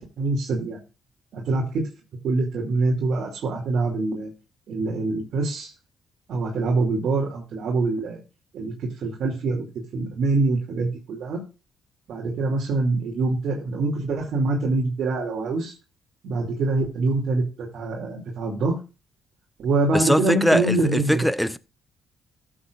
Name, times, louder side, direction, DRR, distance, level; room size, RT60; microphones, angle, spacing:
voice 1, 0.2-0.8 1.3-1.9 2.2-4.3 4.7-5.7 6.3-8.2 8.5-9.7 9.9-11.4 12.1-15.7 16.2-18.8 19.6-21.3, right 3 dB, 65° right, 2.6 m, -25 dB
voice 2, 19.9-21.6, equal, ahead, 0.7 m, -21 dB
14.0 x 7.5 x 2.5 m
cardioid pair, 90°, 0 cm